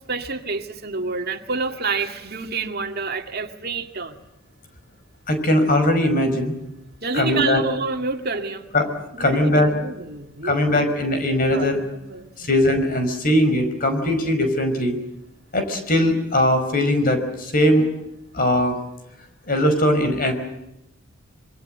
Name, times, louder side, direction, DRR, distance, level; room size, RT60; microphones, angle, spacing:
voice 1, 0.1-4.2 7.0-8.7 9.1-10.8 11.3-12.5, right 4 dB, 50° right, 5 dB, 2.1 m, -28 dB
voice 2, 5.3-6.5 7.1-7.6 8.7-8.9 9.1-9.7 10.4-11.8 12.4-15.0 15.5-17.9 18.3-18.8 19.5-20.3, left 1 dB, 45° left, 7 dB, 5.3 m, -20 dB
26.5 x 23.5 x 7.8 m, 0.85 s
head